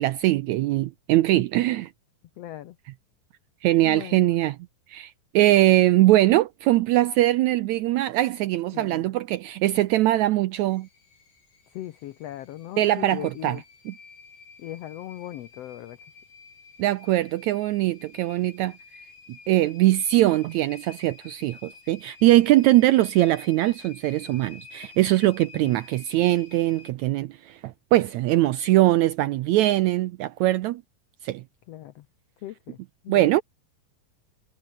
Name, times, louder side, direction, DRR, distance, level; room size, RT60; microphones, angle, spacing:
voice 1, 0.0-1.9 3.6-4.6 4.9-10.9 12.8-13.6 13.9-14.0 16.8-18.7 19.5-30.8 31.2-31.4 33.1-33.4, right 16 dB, 80° right, 1.7 m, -21 dB
voice 2, 2.4-2.8 3.8-4.3 8.7-9.0 11.7-13.6 14.6-16.0 25.5-25.8 31.7-32.0 32.4-32.8 33.0-33.4, left 13 dB, 90° left, 1.4 m, -38 dB
sound 1, 10.7-26.9, left 5 dB, 70° left, 6.8 m, -50 dB
omnidirectional pair, 3.9 m